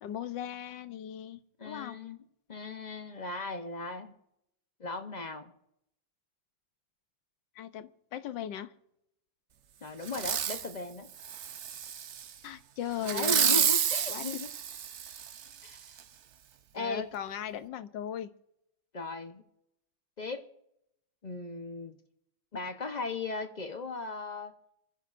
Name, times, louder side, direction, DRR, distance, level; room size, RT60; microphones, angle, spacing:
voice 1, 0.0-2.0 7.5-8.7 12.4-13.7 14.1-14.4 16.7-18.3, left 10 dB, 70° left, 11 dB, 1.4 m, -38 dB
voice 2, 1.6-2.2 2.5-4.1 4.8-5.5 9.8-11.1 13.0-14.5 15.6-15.8 16.7-17.1 18.9-19.4 20.2-20.4 21.2-22.0 22.5-24.5, left 3 dB, 45° left, 6 dB, 0.5 m, -37 dB
Fireworks, 10.1-10.7 11.2-12.3 13.0-15.4 16.0-16.1, right 8 dB, 70° right, 0.6 m, -29 dB
27.0 x 15.0 x 2.6 m, 0.81 s
omnidirectional pair, 2.2 m